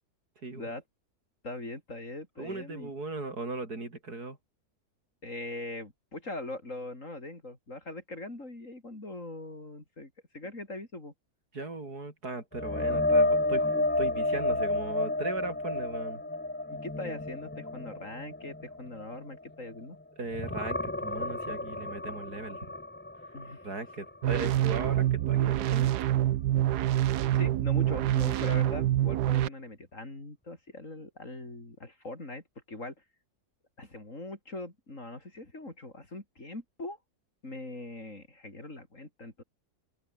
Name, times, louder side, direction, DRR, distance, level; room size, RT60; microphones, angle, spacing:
voice 1, 1.4-2.9 5.2-11.1 16.7-20.0 23.3-23.7 27.3-32.9 33.8-37.0 37.4-39.4, left 2 dB, 50° left, 5.7 m, -41 dB
voice 2, 2.4-4.4 11.5-13.7 14.0-16.2 20.2-22.7 23.6-25.9, right 3 dB, 70° right, 5.4 m, -38 dB
sound 1, 12.5-20.0 20.3-24.2 24.5-24.8 28.1-28.2, left 2 dB, 15° left, 0.3 m, -31 dB
sound 2, 24.2-29.5, right 13 dB, 85° right, 1.3 m, -26 dB
omnidirectional pair, 1.7 m